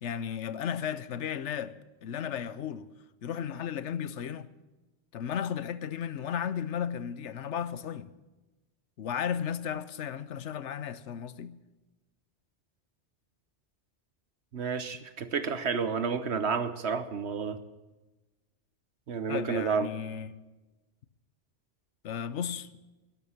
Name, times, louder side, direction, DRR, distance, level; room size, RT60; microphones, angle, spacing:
voice 1, 0.0-2.9 3.2-4.5 5.1-8.1 9.0-11.6 19.3-20.4 22.0-22.7, left 8 dB, 85° left, 1.1 m, -34 dB
voice 2, 14.5-17.6 19.1-19.9, right 5 dB, 70° right, 1.2 m, -30 dB
12.5 x 12.0 x 8.6 m
omnidirectional pair, 1.2 m